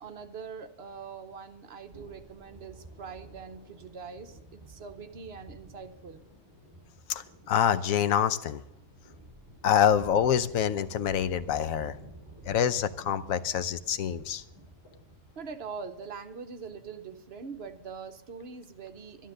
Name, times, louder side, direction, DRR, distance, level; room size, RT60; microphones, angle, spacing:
voice 1, 0.0-6.2 15.4-19.3, right 5 dB, 55° right, 9 dB, 1.0 m, -43 dB
sound 1, 1.9-18.1, right 1 dB, 20° right, 5.3 m, -51 dB
voice 2, 7.1-8.6 9.6-12.0 12.5-14.4, left 9 dB, 85° left, 13 dB, 1.1 m, -26 dB
12.0 x 11.0 x 6.5 m, 0.86 s
omnidirectional pair, 1.4 m